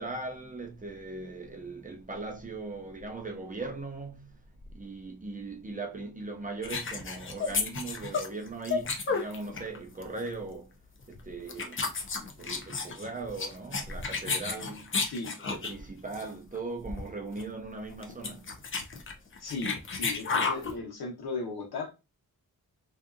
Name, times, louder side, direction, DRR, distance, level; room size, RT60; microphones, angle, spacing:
voice 1, 0.0-4.4 4.7-10.8 11.1-11.8 12.4-15.0 15.5-18.5, right 3 dB, 25° right, 0.4 m, -39 dB
sound 1, 6.6-9.8 10.0-10.3 11.0-11.2 11.5-15.8 16.1-16.3 16.6-16.7 16.8-17.1 17.4-17.5 17.9-20.7, left 4 dB, 35° left, 0.5 m, -32 dB
voice 2, 19.4-21.9, left 3 dB, 85° left, 1.0 m, -36 dB
2.7 x 2.3 x 2.4 m
wide cardioid pair, 115°, 37 cm